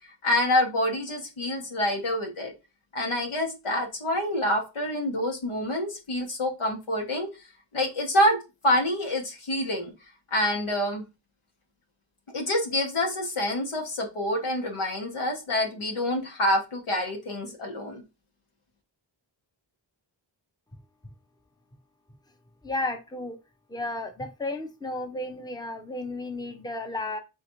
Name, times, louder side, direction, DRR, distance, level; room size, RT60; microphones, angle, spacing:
voice 1, 0.2-2.5 2.9-7.3 7.7-8.4 8.6-9.9 10.3-11.0 12.3-18.0, left 1 dB, 90° left, 2 dB, 1.4 m, -27 dB
voice 2, 22.6-23.4 23.7-27.2, left 2 dB, 10° left, 6 dB, 0.6 m, -33 dB
4.1 x 3.9 x 3.1 m, 0.27 s
wide cardioid pair, 100°, 48 cm